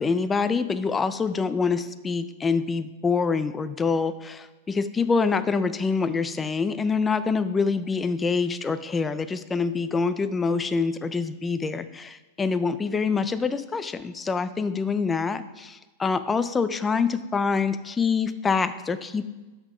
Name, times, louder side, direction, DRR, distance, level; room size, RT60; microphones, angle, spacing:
voice 1, 0.0-19.3, left 5 dB, 15° left, 13 dB, 0.4 m, -25 dB
5.9 x 5.8 x 5.5 m, 1.2 s
supercardioid pair, 140°, 0 cm